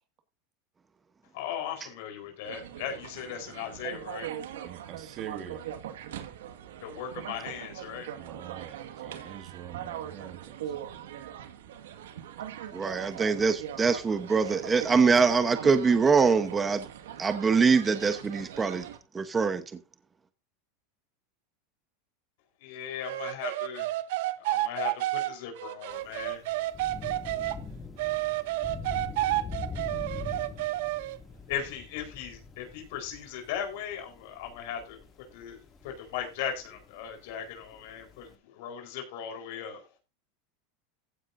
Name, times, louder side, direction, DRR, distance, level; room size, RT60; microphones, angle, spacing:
voice 1, 1.3-4.3 6.8-8.1 22.6-23.9 24.4-26.4 31.5-39.9, left 8 dB, 70° left, 4.3 m, -38 dB
sound 1, 2.4-19.0, right 10 dB, 90° right, 1.9 m, -41 dB
voice 2, 4.6-5.7 8.1-10.7, right 10 dB, 40° right, 2.1 m, -44 dB
voice 3, 12.7-16.8 17.2-18.9 19.1-19.6, right 5 dB, 20° right, 1.0 m, -23 dB
sound 2, 23.0-27.6 28.0-31.2, right 17 dB, 70° right, 1.0 m, -30 dB
Thunder / Rain, 25.9-38.3, left 4 dB, 20° left, 2.5 m, -43 dB
15.5 x 9.4 x 2.7 m
supercardioid pair, 130°, 0 cm